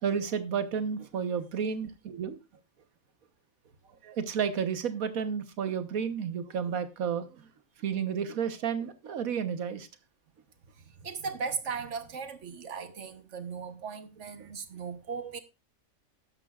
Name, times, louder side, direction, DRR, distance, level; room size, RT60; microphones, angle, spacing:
voice 1, 0.0-2.4 4.0-7.5 7.8-9.9 14.4-14.5, right 7 dB, 75° right, 1.5 m, -31 dB
voice 2, 10.8-15.4, right 5 dB, 60° right, 1.3 m, -37 dB
13.0 x 10.5 x 2.4 m
omnidirectional pair, 1.5 m